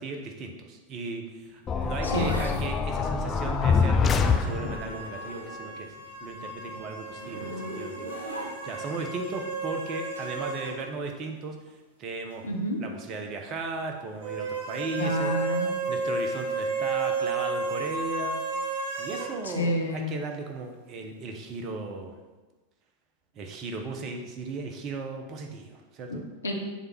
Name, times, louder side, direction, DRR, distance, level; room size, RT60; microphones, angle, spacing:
voice 1, 0.0-12.5 12.8-15.3 15.9-18.6 19.0-22.2 23.3-26.3, right 3 dB, 35° right, 3 dB, 1.0 m, -36 dB
Zipper (clothing), 1.4-5.9 6.2-8.9 10.5-10.8, equal, 80° right, 1.4 m, -41 dB
sound 1, 1.7-5.0, left 5 dB, 20° left, 0.5 m, -25 dB
voice 2, 2.0-2.6 12.4-12.8 15.0-15.7 19.4-20.1 26.4-26.5, equal, 75° left, 1 dB, 1.1 m, -29 dB
sound 2, 4.2-10.8 11.1-11.2 14.2-19.3, right 3 dB, 60° right, 1.4 m, -33 dB
7.4 x 3.5 x 5.8 m, 1.2 s
figure-of-eight pair, 90°, 0 cm